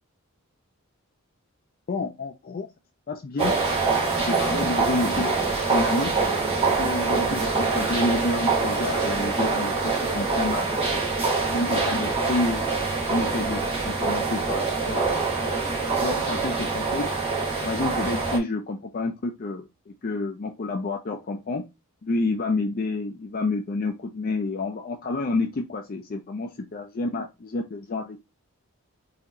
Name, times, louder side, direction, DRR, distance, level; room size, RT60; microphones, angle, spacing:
voice 1, 1.9-2.7 3.1-3.5 4.2-5.3 5.7-6.2 6.8-11.1 11.4-12.7 13.1-15.3 16.0-17.1 17.6-21.6 22.0-28.2, left 2 dB, 40° left, 4 dB, 0.4 m, -29 dB
sound 1, 3.4-18.4, right 4 dB, 25° right, 1.1 m, -25 dB
4.1 x 2.9 x 2.6 m, 0.23 s
head